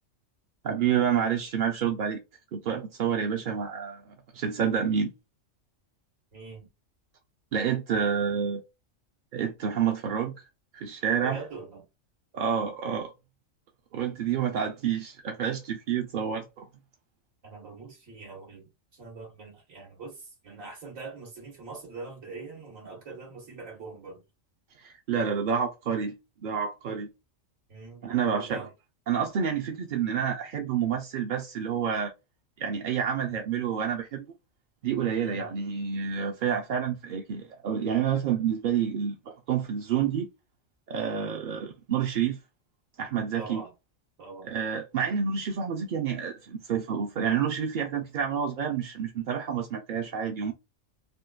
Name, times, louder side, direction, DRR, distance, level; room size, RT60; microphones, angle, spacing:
voice 1, 0.6-2.2 2.5-5.1 7.5-8.6 9.3-10.3 10.7-11.4 12.3-13.1 13.9-16.7 24.8-26.1 26.4-27.1 28.0-28.7 29.1-32.1 32.6-34.3 34.8-40.3 40.9-42.4 43.0-43.6 44.4-50.5, right 7 dB, 60° right, 0.5 m, -28 dB
voice 2, 6.3-6.7 11.2-11.9 17.4-24.2 27.7-28.7 35.1-35.5 43.4-43.7 44.2-44.5, right 4 dB, 90° right, 1.7 m, -43 dB
3.5 x 2.3 x 2.3 m
omnidirectional pair, 1.3 m